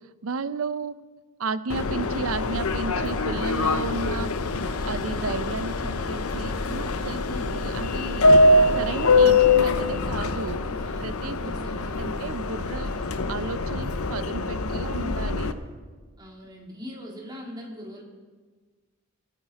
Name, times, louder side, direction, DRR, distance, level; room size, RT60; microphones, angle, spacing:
voice 1, 0.2-0.9 1.4-4.3 4.8-8.3 8.7-10.7 11.0-11.5 12.0-12.9 13.3-15.5, right 4 dB, 75° right, 14 dB, 0.6 m, -33 dB
Subway metro underground, 1.7-15.5, left 2 dB, 85° left, 0.9 m, -24 dB
voice 2, 7.3-7.7 10.8-12.1 16.2-18.0, left 1 dB, 20° right, -1 dB, 2.5 m, -41 dB
18.5 x 14.5 x 4.2 m, 1.4 s
head